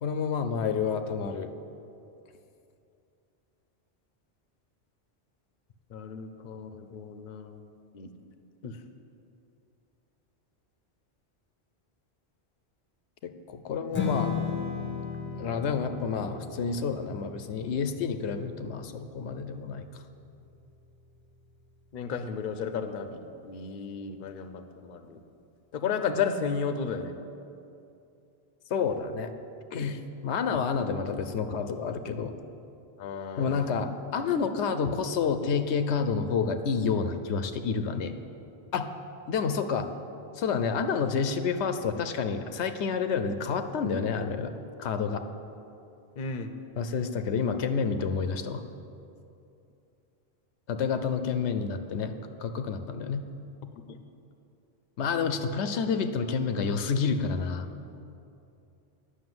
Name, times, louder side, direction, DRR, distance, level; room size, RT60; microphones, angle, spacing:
voice 1, 0.0-1.5 13.2-14.3 15.3-20.0 28.7-29.3 29.7-32.3 33.4-38.1 38.7-38.9 39.3-39.9 40.4-44.5 44.8-45.2 46.8-48.6 50.7-52.1 52.4-53.3 55.0-57.7, left 5 dB, 90° left, 9 dB, 0.9 m, -29 dB
voice 2, 5.9-7.7 7.9-8.1 8.6-8.8 21.9-25.2 25.7-27.1 33.0-33.9 46.2-46.5 53.9-54.0, left 6 dB, 55° left, 9 dB, 0.7 m, -33 dB
Strum, 13.9-20.2, left 6 dB, 10° left, 1.0 m, -36 dB
9.4 x 6.4 x 7.8 m, 2.7 s
omnidirectional pair, 1.1 m